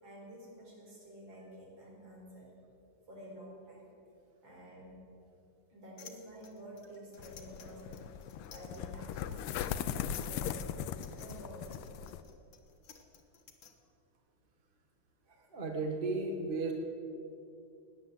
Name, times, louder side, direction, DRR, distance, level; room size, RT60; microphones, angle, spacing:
voice 1, 0.0-2.5 3.1-3.9 4.4-5.0 5.7-8.1 8.5-10.9 11.2-11.8, right 1 dB, 60° right, -3 dB, 5.0 m, -50 dB
sound 1, 6.0-13.7, left 7 dB, 60° left, 2.0 m, -56 dB
sound 2, 7.2-12.2, left 9 dB, 85° left, 1.6 m, -39 dB
voice 2, 15.3-16.7, right 3 dB, 30° right, 2 dB, 1.4 m, -35 dB
17.5 x 10.5 x 7.7 m, 2.6 s
omnidirectional pair, 2.4 m